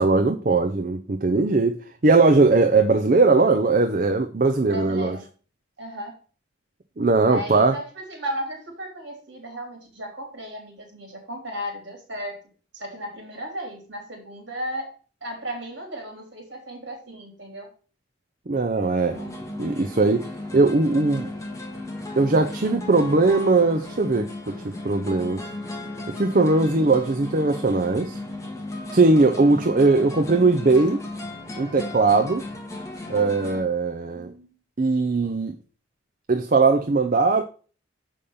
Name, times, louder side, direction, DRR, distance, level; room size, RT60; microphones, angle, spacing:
voice 1, 0.0-1.8 2.0-5.2 7.0-7.7 18.5-19.2 19.6-20.3 20.5-21.3 22.2-25.5 26.1-28.2 28.9-31.0 31.6-32.4 33.1-34.3 34.8-35.5 36.3-37.4, right 3 dB, 40° right, 0.6 m, -20 dB
voice 2, 4.7-5.2 5.8-6.2 7.2-12.4 12.7-14.9 15.2-17.7 19.1-19.7 34.1-34.6, right 1 dB, 60° right, 3.3 m, -35 dB
sound 1, 19.1-33.6, left 2 dB, 15° left, 1.5 m, -35 dB
6.9 x 5.2 x 5.5 m
head